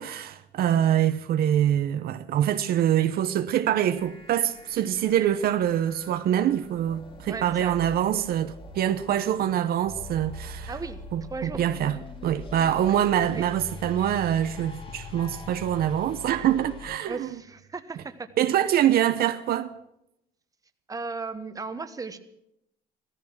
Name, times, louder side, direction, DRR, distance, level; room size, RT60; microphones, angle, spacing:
voice 1, 0.0-10.7 11.1-17.3 18.4-19.7, right 10 dB, 65° right, 0.8 m, -25 dB
sound 1, 4.0-17.0, left 3 dB, 30° left, 2.1 m, -43 dB
voice 2, 7.3-7.8 10.7-11.0 11.3-11.6 12.9-13.5 17.1-18.3 20.9-22.2, right 4 dB, 20° right, 1.2 m, -36 dB
16.0 x 14.0 x 6.1 m
cardioid pair, 110°, 17 cm